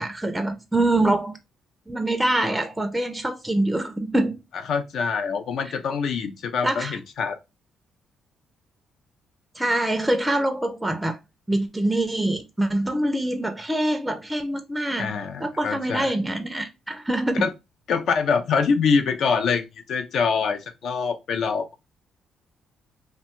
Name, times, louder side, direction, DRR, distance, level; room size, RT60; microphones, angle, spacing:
voice 1, 0.0-1.4 1.9-4.4 6.6-7.0 9.6-11.2 11.5-15.1 15.4-17.4, right 1 dB, 10° right, 0.4 m, -24 dB
voice 2, 4.7-7.4 15.0-16.1 17.3-17.5 17.9-21.8, left 5 dB, 70° left, 0.3 m, -24 dB
2.6 x 2.2 x 2.9 m
cardioid pair, 90°, 0 cm